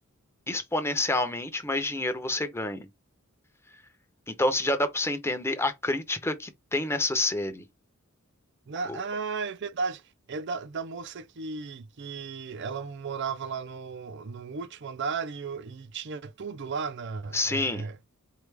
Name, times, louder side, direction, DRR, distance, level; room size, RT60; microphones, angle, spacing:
voice 1, 0.5-2.9 4.3-7.6 8.9-9.0 17.3-17.9, left 2 dB, 10° left, 0.7 m, -28 dB
voice 2, 8.7-10.0 10.3-18.0, right 5 dB, 55° right, 0.5 m, -35 dB
4.7 x 2.4 x 3.3 m
head